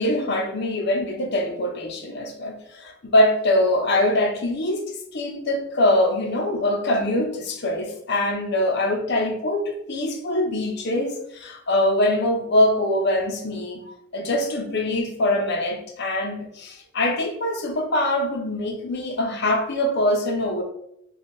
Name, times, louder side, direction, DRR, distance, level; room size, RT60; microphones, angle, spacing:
voice 1, 0.0-20.6, left 1 dB, 55° left, 0.7 m, -23 dB
4.2 x 2.3 x 3.2 m
head